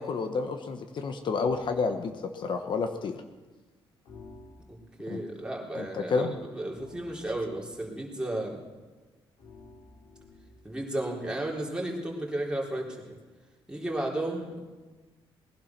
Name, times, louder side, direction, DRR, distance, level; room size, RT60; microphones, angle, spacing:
voice 1, 0.0-3.2 5.1-5.2 5.7-6.3, left 4 dB, 55° left, 7 dB, 1.1 m, -30 dB
sound 1, 1.4-1.8 4.1-5.0 6.7-7.8 9.4-10.8, left 3 dB, 85° left, 3.7 m, -51 dB
voice 2, 4.7-8.6 10.6-13.0 13.7-14.8, right 1 dB, 10° right, -2 dB, 3.8 m, -34 dB
19.5 x 11.5 x 6.0 m, 1.3 s
cardioid pair, 100°, 9 cm